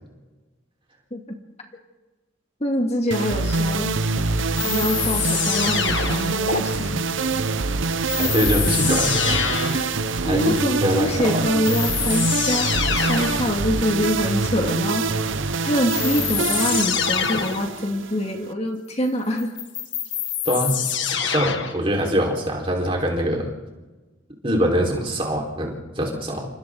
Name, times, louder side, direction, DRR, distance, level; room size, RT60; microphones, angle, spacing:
voice 1, 2.6-3.9 4.6-7.0 10.2-15.4 15.6-19.5, equal, 30° left, 2 dB, 2.2 m, -25 dB
sound 1, 3.1-18.5, right 3 dB, 65° right, 0.9 m, -25 dB
sound 2, 4.6-6.6 8.1-9.9 11.2-11.3 11.6-13.5 15.9-17.7 19.4-21.8, left 8 dB, 65° left, 1.9 m, -25 dB
voice 2, 8.2-11.4 20.4-20.8 21.3-23.5 24.4-26.5, equal, 25° right, 0 dB, 4.5 m, -24 dB
29.0 x 27.0 x 4.0 m, 1.2 s
head